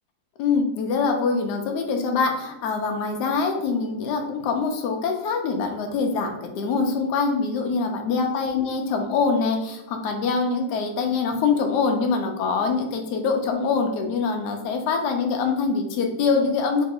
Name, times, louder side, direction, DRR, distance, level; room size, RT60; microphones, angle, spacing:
voice 1, 0.4-16.8, left 4 dB, 90° left, 3 dB, 0.9 m, -24 dB
3.1 x 2.8 x 3.7 m, 0.90 s
omnidirectional pair, 2.4 m